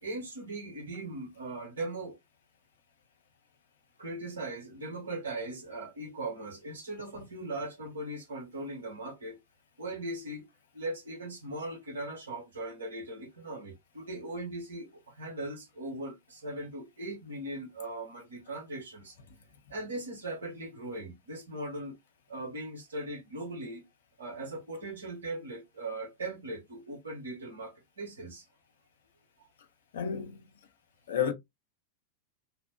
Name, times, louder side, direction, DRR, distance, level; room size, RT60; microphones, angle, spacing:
voice 1, 0.0-2.2 4.0-9.4 9.8-10.5 10.7-19.2 19.7-21.9 22.3-23.8 24.2-28.4, right 2 dB, 70° right, 1.0 m, -39 dB
voice 2, 29.9-30.3 31.1-31.3, left 8 dB, 60° left, 0.5 m, -30 dB
3.0 x 2.0 x 2.7 m
figure-of-eight pair, 90°, 0 cm